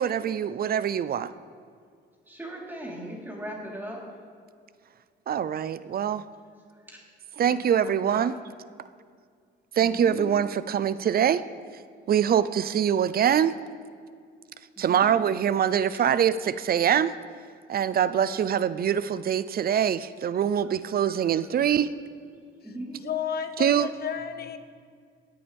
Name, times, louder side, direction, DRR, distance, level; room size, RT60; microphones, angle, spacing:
voice 1, 0.0-1.3 5.3-6.2 7.4-8.3 9.8-11.4 12.1-13.6 14.8-17.2 17.7-21.9 23.6-23.9, right 9 dB, 50° right, 15 dB, 0.5 m, -24 dB
voice 2, 2.3-4.0 7.4-8.3 9.8-10.3 14.8-15.1 22.6-23.1, right 1 dB, 10° right, -4 dB, 3.8 m, -39 dB
voice 3, 22.6-24.6, left 8 dB, 50° left, 8 dB, 1.1 m, -33 dB
25.5 x 8.6 x 3.5 m, 2.2 s
cardioid pair, 90°, 20 cm